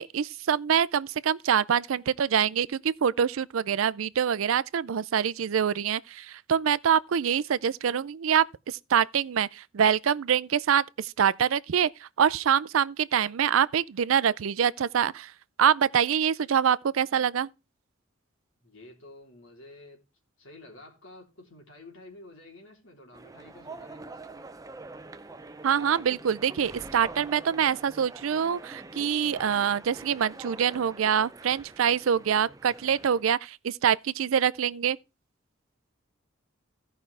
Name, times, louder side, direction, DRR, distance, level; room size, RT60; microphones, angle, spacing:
voice 1, 0.0-15.3 15.6-17.5 25.6-35.0, right 8 dB, 75° right, 0.4 m, -25 dB
voice 2, 18.6-20.0 20.4-24.2, left 2 dB, 65° left, 3.4 m, -50 dB
sound 1, 23.1-33.3, right 3 dB, 15° right, 0.5 m, -45 dB
16.0 x 5.6 x 3.3 m
head